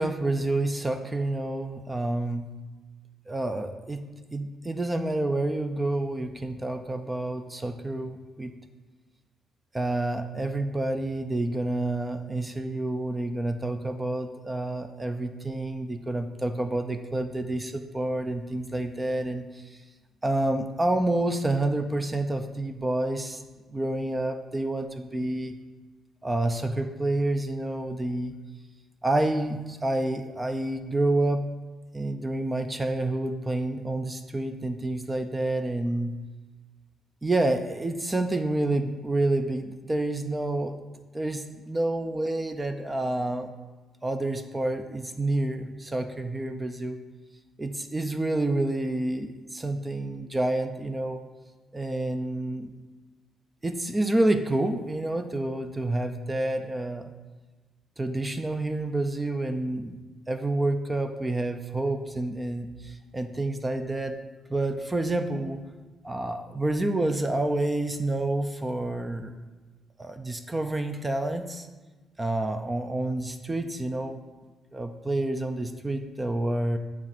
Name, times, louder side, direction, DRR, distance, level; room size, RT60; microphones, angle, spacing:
voice 1, 0.0-2.5 3.3-8.5 9.7-19.8 20.2-23.4 23.7-25.6 26.2-28.3 29.0-31.5 31.9-36.1 37.2-40.8 41.1-43.5 44.0-47.0 47.6-51.2 51.7-52.7 53.6-57.1 58.0-60.0 60.3-64.1 64.5-65.6 66.0-69.3 70.0-71.7 72.2-74.2 74.7-76.8, right 2 dB, 20° right, 8 dB, 0.5 m, -28 dB
8.8 x 3.6 x 5.9 m, 1.3 s
cardioid pair, 90°, 0 cm